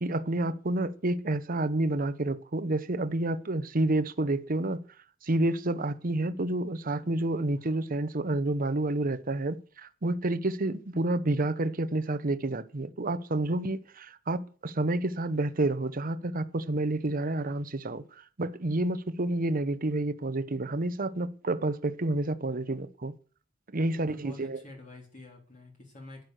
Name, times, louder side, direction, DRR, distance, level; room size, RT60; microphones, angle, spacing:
voice 1, 0.0-4.8 5.2-23.1 23.7-24.6, right 2 dB, 45° right, 0.9 m, -29 dB
voice 2, 23.9-26.2, left 2 dB, 40° left, 3.5 m, -47 dB
11.0 x 10.5 x 6.6 m
head